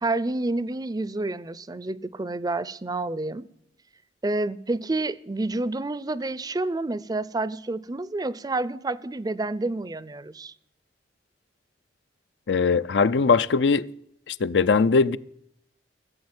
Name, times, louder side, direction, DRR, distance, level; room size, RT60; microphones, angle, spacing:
voice 1, 0.0-3.5 4.2-10.5, right 2 dB, 20° right, 0.5 m, -29 dB
voice 2, 12.5-13.9 14.3-15.2, left 4 dB, 70° left, 0.5 m, -20 dB
16.0 x 7.9 x 9.5 m
head